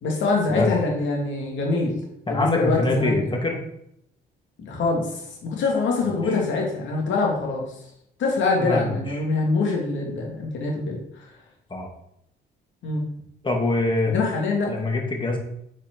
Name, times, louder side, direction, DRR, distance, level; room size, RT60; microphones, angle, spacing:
voice 1, 0.0-2.0 2.3-3.2 4.6-7.7 8.2-11.0 12.8-13.0 14.1-14.7, left 3 dB, 75° left, -1 dB, 2.3 m, -24 dB
voice 2, 2.3-3.6 6.0-6.2 8.6-9.1 11.7-11.9 13.4-14.1 14.7-15.4, left 2 dB, 25° left, 0 dB, 2.2 m, -24 dB
7.4 x 4.6 x 4.6 m, 0.74 s
cardioid pair, 90°, 20 cm